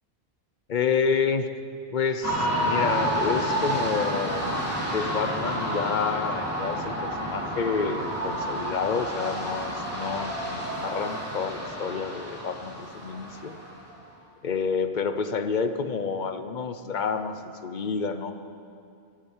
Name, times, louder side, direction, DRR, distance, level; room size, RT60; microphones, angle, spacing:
voice 1, 0.7-1.5 1.9-4.5 4.9-13.6 14.4-18.3, left 5 dB, 50° left, 9 dB, 0.9 m, -29 dB
sound 1, 2.2-13.9, equal, 15° right, 3.3 m, -30 dB
16.0 x 12.0 x 7.3 m, 2.5 s
omnidirectional pair, 1.1 m